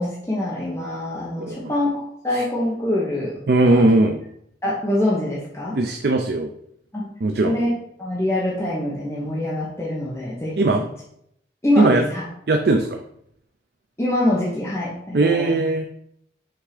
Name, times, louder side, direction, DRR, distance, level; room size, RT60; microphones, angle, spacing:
voice 1, 0.0-3.8 4.6-5.8 6.9-7.1 7.4-7.7 8.0-10.7 11.6-12.2 14.0-15.6, left 1 dB, 15° left, -6 dB, 1.0 m, -24 dB
voice 2, 1.4-1.7 3.5-4.2 5.7-6.5 7.2-7.6 10.6-10.8 11.8-12.0 12.5-13.0 15.1-15.9, right 2 dB, 65° right, 4 dB, 0.5 m, -19 dB
5.8 x 3.6 x 4.9 m, 0.73 s
head